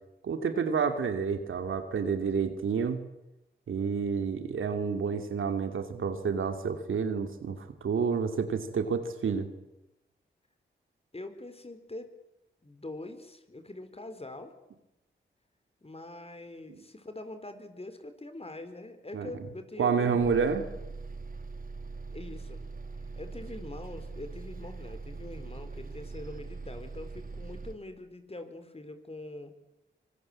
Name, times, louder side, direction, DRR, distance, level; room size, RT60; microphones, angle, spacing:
voice 1, 0.2-3.0 3.7-9.5 16.7-16.8 19.1-19.3 19.8-20.7, right 6 dB, 80° right, 7 dB, 2.6 m, -29 dB
voice 2, 11.1-12.1 12.6-14.5 15.8-20.3 22.1-22.6 23.2-29.5, left 2 dB, 30° left, 9 dB, 4.3 m, -43 dB
Bus, 20.2-27.8, right 3 dB, 45° right, 2.8 m, -42 dB
25.0 x 21.5 x 8.7 m, 0.94 s
cardioid pair, 45°, 20 cm